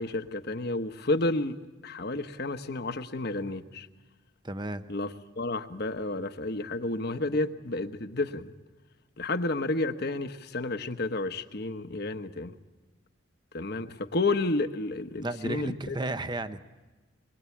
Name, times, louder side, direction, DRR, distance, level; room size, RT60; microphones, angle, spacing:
voice 1, 0.0-1.6 1.8-3.9 4.9-8.5 9.2-12.5 13.5-16.0, left 2 dB, 55° left, 9 dB, 1.2 m, -31 dB
voice 2, 4.4-4.8 15.2-16.6, right 2 dB, 20° right, 10 dB, 0.8 m, -33 dB
23.5 x 22.0 x 8.6 m, 1.2 s
head